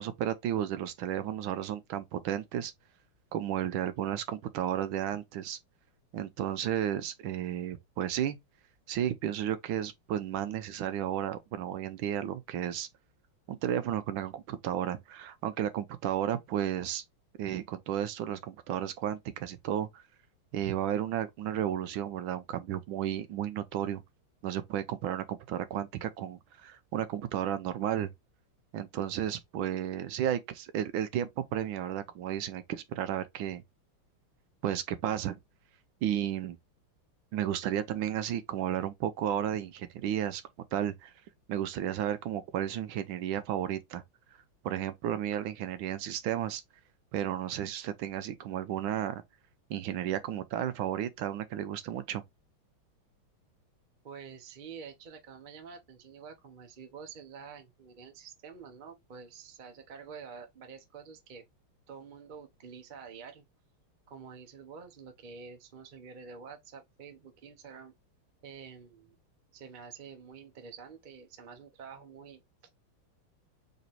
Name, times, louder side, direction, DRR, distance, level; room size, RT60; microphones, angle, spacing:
voice 1, 0.0-2.7 3.3-5.6 6.1-8.4 8.9-12.9 13.5-17.0 17.4-20.0 20.5-24.0 24.4-28.1 28.7-33.6 34.6-35.4 36.0-36.6 37.3-40.4 40.7-41.1 41.5-44.0 44.6-46.6 47.1-49.2 49.7-52.2, right 10 dB, 75° right, 1.4 m, -33 dB
voice 2, 54.0-61.4 61.9-63.4 64.1-67.9 68.4-69.2 69.5-72.7, right 6 dB, 50° right, 0.5 m, -48 dB
4.0 x 3.0 x 4.1 m
omnidirectional pair, 2.3 m